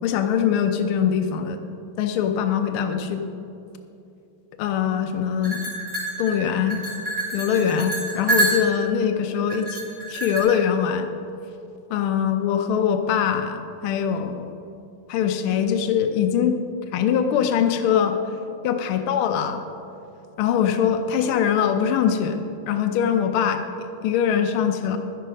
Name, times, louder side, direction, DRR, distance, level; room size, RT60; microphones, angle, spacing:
voice 1, 0.0-1.6 2.0-3.2 4.6-5.6 6.2-6.8 7.3-9.8 10.1-11.1 11.9-14.5 15.1-16.6 16.9-18.2 18.6-19.6 20.4-22.4 22.7-25.0, left 8 dB, 80° left, 6 dB, 1.6 m, -22 dB
sound 1, 5.4-8.9 9.5-10.4, right 2 dB, 20° right, 3.4 m, -27 dB
12.0 x 10.0 x 5.2 m, 2.7 s
omnidirectional pair, 2.4 m